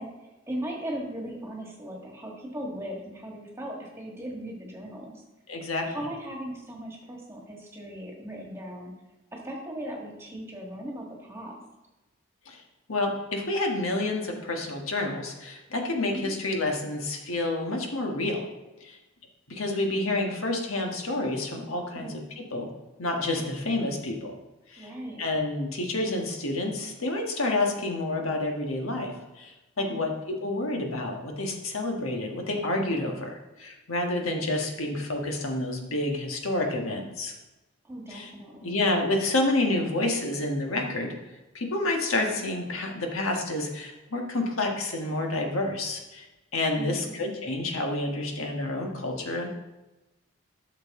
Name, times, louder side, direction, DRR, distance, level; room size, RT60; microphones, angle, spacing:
voice 1, 0.0-5.2 5.8-8.9 9.3-11.6 16.1-16.3 21.9-22.2 24.8-25.2 29.8-30.1 32.8-33.1 37.8-38.8 46.7-47.1, right 1 dB, 10° right, -1 dB, 1.7 m, -38 dB
voice 2, 5.5-5.9 12.5-12.6 12.9-18.4 18.8-19.0 19.5-22.2 22.5-22.7 23.0-24.3 24.7-24.9 25.2-37.3 38.1-38.3 38.6-41.1 41.5-46.3 46.5-49.5, left 2 dB, 90° left, 2 dB, 1.5 m, -29 dB
12.5 x 6.6 x 3.7 m, 1.1 s
head